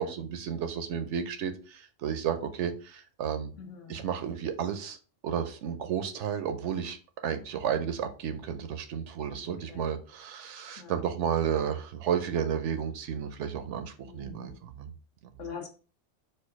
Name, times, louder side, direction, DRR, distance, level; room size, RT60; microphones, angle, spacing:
voice 1, 0.0-3.5 3.9-5.0 5.2-7.0 7.2-14.9, right 8 dB, 70° right, 8 dB, 0.9 m, -32 dB
voice 2, 3.6-4.0 9.4-10.0 10.8-11.1 14.0-14.6 15.4-15.7, left 6 dB, 70° left, 5 dB, 1.2 m, -44 dB
4.4 x 2.3 x 4.6 m, 0.37 s
omnidirectional pair, 1.3 m